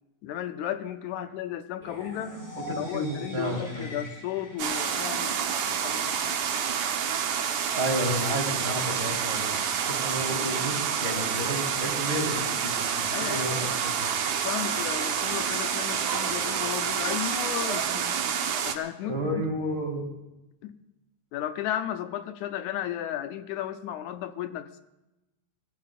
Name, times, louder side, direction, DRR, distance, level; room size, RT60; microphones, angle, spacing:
voice 1, 0.2-2.4 2.7-6.4 13.1-13.6 14.3-18.2 18.6-19.5 20.6-20.8 21.3-24.8, left 11 dB, 80° left, 10 dB, 2.0 m, -34 dB
sound 1, 1.8-5.8, left 1 dB, 20° left, 5.3 m, -43 dB
voice 2, 2.7-4.0 7.5-14.1 19.0-20.1, equal, 25° right, -2 dB, 4.0 m, -32 dB
sound 2, 4.6-18.8, right 7 dB, 80° right, 2.6 m, -28 dB
24.5 x 17.5 x 2.5 m, 0.97 s
omnidirectional pair, 3.5 m